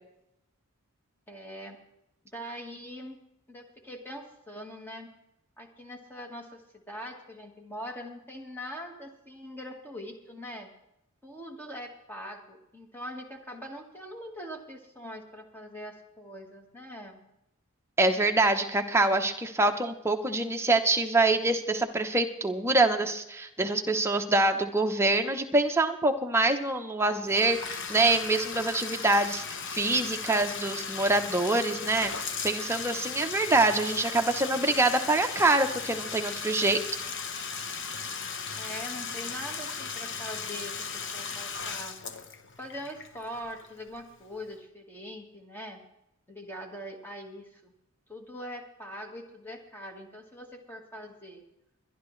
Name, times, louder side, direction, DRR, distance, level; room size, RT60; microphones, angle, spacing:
voice 1, 1.3-1.8 2.3-3.2 3.5-5.1 5.6-10.7 11.2-17.2 38.5-41.9 42.6-45.8 46.3-47.7 48.1-51.4, equal, 10° left, 2 dB, 1.5 m, -42 dB
voice 2, 18.0-32.1 32.4-36.8, right 2 dB, 10° right, 5 dB, 0.8 m, -25 dB
Bathtub (filling or washing), 27.2-44.0, left 5 dB, 55° left, 1.0 m, -37 dB
22.0 x 11.5 x 3.2 m, 0.86 s
head